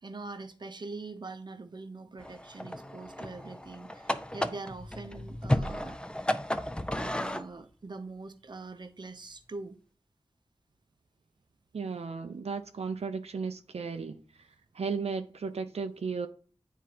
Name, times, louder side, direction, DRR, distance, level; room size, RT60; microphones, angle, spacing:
voice 1, 0.0-6.0 6.9-9.8, right 3 dB, 45° right, 0.6 m, -43 dB
sound 1, 2.2-7.5, left 1 dB, 10° left, 0.4 m, -33 dB
voice 2, 11.7-14.2 14.7-16.3, right 5 dB, 85° right, 0.5 m, -35 dB
9.3 x 3.7 x 2.9 m
wide cardioid pair, 75°, 11 cm